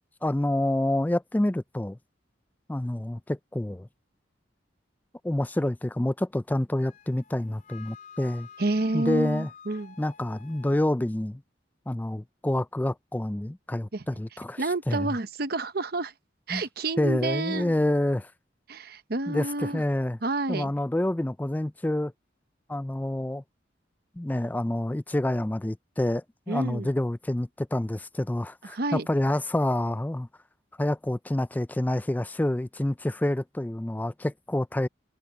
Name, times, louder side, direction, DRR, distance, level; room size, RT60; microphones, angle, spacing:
voice 1, 0.2-2.0 2.7-3.9 5.2-8.5 8.9-9.5 10.0-11.4 11.9-15.1 16.5-16.6 17.0-18.3 19.3-20.2 20.5-22.1 22.7-23.4 24.2-30.3 30.8-34.9, left 1 dB, 10° left, 0.3 m, -28 dB
Wind instrument woodwind instrument, 6.8-10.9, left 6 dB, 45° left, 3.4 m, -49 dB
voice 2, 8.6-10.0 13.9-14.0 14.6-16.1 16.5-17.7 18.7-19.8 20.2-20.7 26.5-26.9 28.7-29.1, right 2 dB, 55° right, 0.9 m, -29 dB
head